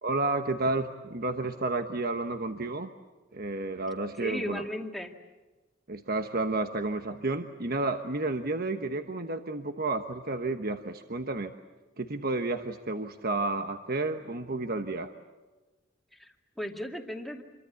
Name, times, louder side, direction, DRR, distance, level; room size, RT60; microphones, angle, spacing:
voice 1, 0.0-2.9 3.3-4.6 5.9-11.5 12.0-15.1, right 2 dB, 50° right, 7 dB, 1.2 m, -31 dB
voice 2, 4.2-5.1 16.1-17.4, equal, ahead, 3 dB, 2.2 m, -36 dB
27.5 x 23.5 x 8.5 m, 1.2 s
head